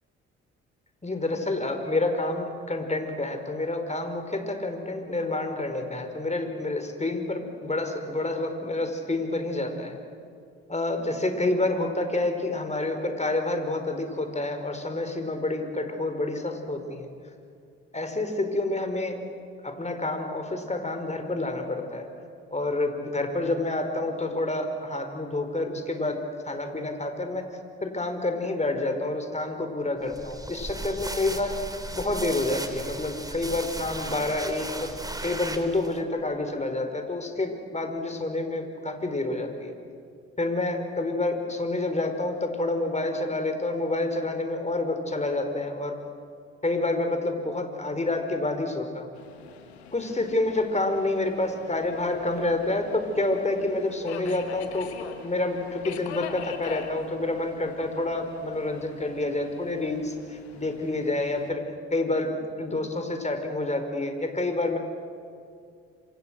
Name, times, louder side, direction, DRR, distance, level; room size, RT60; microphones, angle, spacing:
voice 1, 1.0-10.0 10.7-17.1 17.9-19.2 19.6-22.1 22.5-27.5 27.8-34.9 35.2-39.8 40.4-46.0 46.6-49.1 49.9-61.6 61.9-64.8, left 2 dB, 20° left, 6 dB, 5.1 m, -28 dB
sound 1, 30.1-36.0, right 1 dB, 10° right, 3.4 m, -36 dB
Subway metro underground, 49.1-61.5, left 7 dB, 90° left, 1.6 m, -44 dB
27.0 x 26.5 x 6.5 m, 2.4 s
hypercardioid pair, 45°, 31 cm